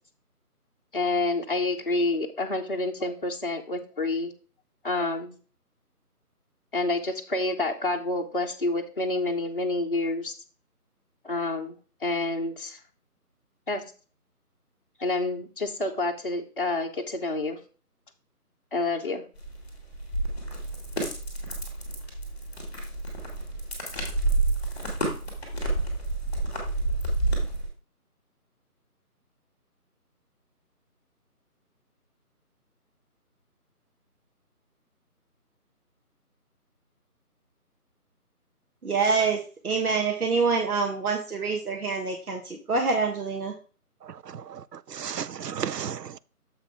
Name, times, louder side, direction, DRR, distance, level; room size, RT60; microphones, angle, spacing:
voice 1, 0.9-4.3 4.8-5.4 6.7-10.3 11.2-11.7 12.0-12.8 13.7-13.8 15.0-17.6 18.7-19.2, left 2 dB, 35° left, 0.7 m, -28 dB
sound 1, 19.4-27.7, right 2 dB, 5° left, 1.5 m, -29 dB
voice 2, 38.8-43.5, right 4 dB, 65° right, 1.4 m, -26 dB
voice 3, 44.0-46.2, right 7 dB, 90° right, 0.6 m, -34 dB
7.1 x 5.4 x 3.5 m
figure-of-eight pair, 160°, 47 cm